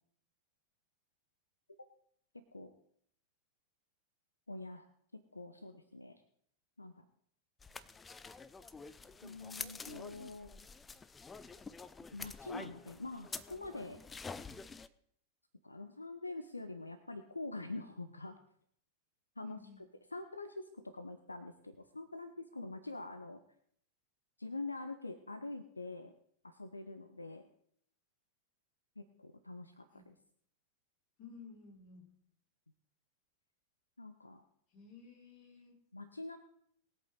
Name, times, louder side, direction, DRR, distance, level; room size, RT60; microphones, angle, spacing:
voice 1, 4.5-4.9 5.1-6.2 6.8-7.0 9.2-10.6 12.1-14.0 15.6-18.4 19.4-19.6 20.1-23.4 24.4-26.1 26.4-27.4 29.0-30.1 34.0-34.4 35.9-36.4, left 2 dB, 80° left, 9 dB, 0.8 m, -45 dB
sound 1, 7.6-14.9, left 4 dB, 15° left, 0.6 m, -48 dB
voice 2, 19.4-19.9 29.9-30.0 31.2-32.1 34.7-35.8, left 5 dB, 40° left, -2 dB, 5.8 m, -54 dB
21.0 x 8.3 x 4.0 m, 0.65 s
figure-of-eight pair, 90°, 0 cm